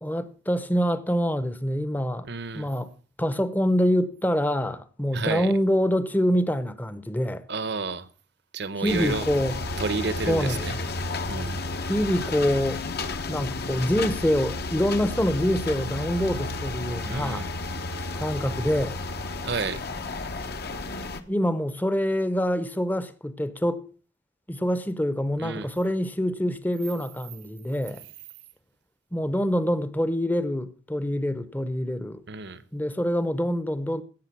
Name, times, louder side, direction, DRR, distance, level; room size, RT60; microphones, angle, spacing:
voice 1, 0.0-2.3 2.5-2.9 3.2-7.4 8.8-9.5 10.3-10.6 11.9-12.8 13.3-17.5 18.1-19.0 21.3-23.8 24.5-28.0 29.1-32.2 32.7-34.0, equal, 10° left, 0.7 m, -25 dB
voice 2, 2.2-2.7 5.1-5.5 7.5-8.1 8.5-9.3 9.8-10.8 11.3-11.6 17.1-17.5 19.4-19.8 25.4-25.7 32.3-32.6, right 4 dB, 60° right, 0.9 m, -30 dB
sound 1, 8.9-21.2, left 3 dB, 55° left, 1.1 m, -32 dB
16.5 x 6.7 x 6.0 m
head